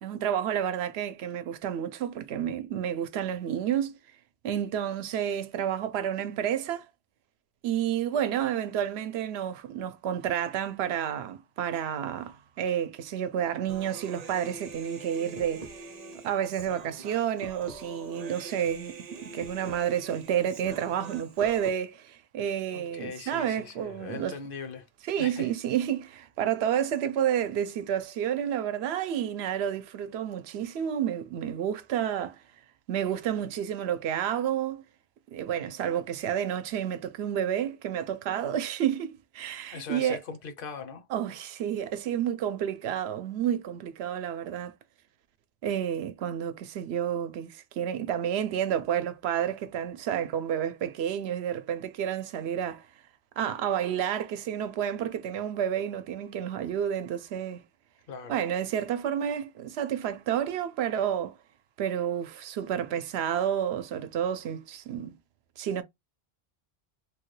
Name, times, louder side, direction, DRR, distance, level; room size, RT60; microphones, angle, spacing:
voice 1, 0.0-4.0 4.4-6.9 7.6-15.9 16.1-24.4 25.0-32.4 32.9-34.8 35.3-40.2 41.1-44.7 45.6-52.9 53.4-57.6 58.3-61.4 61.8-65.1 65.6-65.8, right 9 dB, 90° right, 0.8 m, -30 dB
Human voice, 13.7-21.7, right 3 dB, 45° right, 0.7 m, -44 dB
voice 2, 22.7-24.9 25.2-25.5 39.7-41.1 58.1-58.4, left 5 dB, 65° left, 0.8 m, -40 dB
3.2 x 2.2 x 3.1 m
omnidirectional pair, 1.0 m